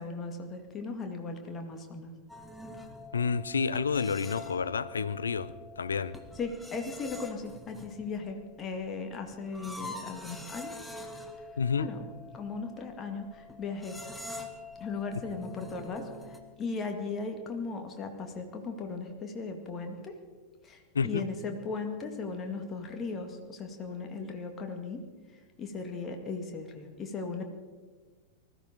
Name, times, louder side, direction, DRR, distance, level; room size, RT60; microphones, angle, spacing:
voice 1, 0.0-2.1 6.4-10.7 11.8-12.0 12.3-14.0 14.8-16.1 16.6-20.1 20.6-25.0 25.6-27.4, left 4 dB, 25° left, 2.1 m, -37 dB
sound 1, 2.3-16.4, left 2 dB, 5° left, 1.7 m, -46 dB
voice 2, 3.1-6.2 11.6-11.9 20.9-21.3, left 5 dB, 70° left, 0.6 m, -30 dB
20.0 x 13.5 x 5.2 m
figure-of-eight pair, 90°, 0 cm